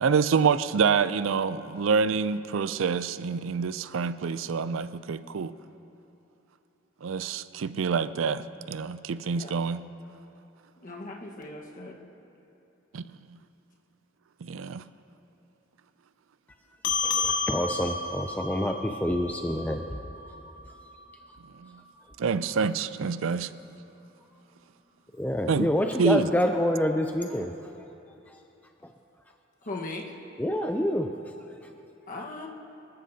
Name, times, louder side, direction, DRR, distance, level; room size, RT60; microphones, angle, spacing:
voice 1, 0.0-5.5 7.0-9.8 12.9-13.0 14.4-14.8 21.6-21.8 22.2-23.5 25.5-25.7 26.0-26.3, right 5 dB, 90° right, 14 dB, 0.4 m, -27 dB
voice 2, 10.8-12.0 29.6-30.2 32.1-32.5, left 2 dB, 45° left, 0 dB, 1.4 m, -38 dB
sound 1, 16.8-21.6, left 4 dB, 75° left, 0.9 m, -32 dB
voice 3, 17.0-20.0 25.1-27.5 28.8-28.9 30.4-31.1, left 1 dB, 10° left, 4 dB, 0.4 m, -27 dB
25.0 x 13.5 x 2.8 m, 2.9 s
head